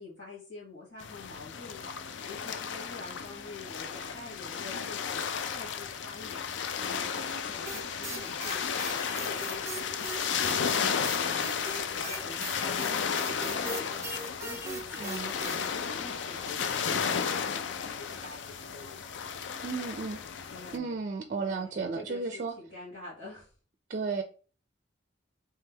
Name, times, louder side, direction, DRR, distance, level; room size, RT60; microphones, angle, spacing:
voice 1, 0.0-6.4 6.7-19.2 20.5-21.0 21.4-23.5, left 2 dB, 80° left, -10 dB, 1.9 m, -47 dB
sound 1, 1.0-20.8, left 7 dB, 65° left, 0.4 m, -33 dB
sound 2, 7.7-15.7, right 2 dB, 15° right, 0.9 m, -40 dB
voice 2, 15.0-15.3 19.6-20.2 20.7-22.5 23.9-24.2, right 4 dB, 45° right, 6 dB, 0.4 m, -33 dB
3.3 x 3.3 x 3.4 m, 0.39 s
head